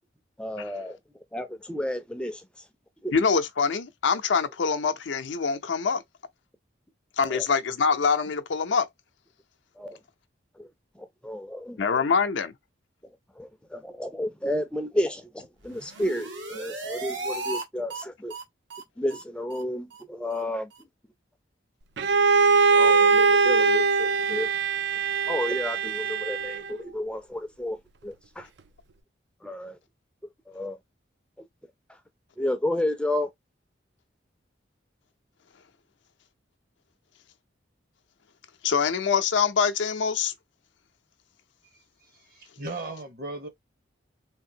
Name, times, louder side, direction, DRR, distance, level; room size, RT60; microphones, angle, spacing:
voice 1, 0.4-1.0 1.3-2.4 3.0-3.1 7.2-7.5 9.8-10.0 10.6-10.7 11.0-11.9 13.4-18.3 19.0-20.7 22.7-24.5 25.3-27.8 28.0-28.5 29.4-29.8 30.5-30.8 32.4-33.3, left 1 dB, 5° left, 0.4 m, -31 dB
voice 2, 3.1-6.0 7.2-8.9 11.8-12.5 38.6-40.3, left 5 dB, 75° left, 0.5 m, -24 dB
sound 1, 15.6-17.6 17.9-18.0 18.3-18.4 18.7-18.8 19.1-19.2 19.5-19.6 19.9-20.0 20.3-20.4 20.7-20.8, right 2 dB, 80° right, 1.1 m, -36 dB
Bowed string instrument, 22.0-26.8, right 4 dB, 65° right, 0.4 m, -21 dB
voice 3, 42.2-43.5, right 2 dB, 50° right, 0.9 m, -36 dB
3.5 x 2.6 x 2.7 m
head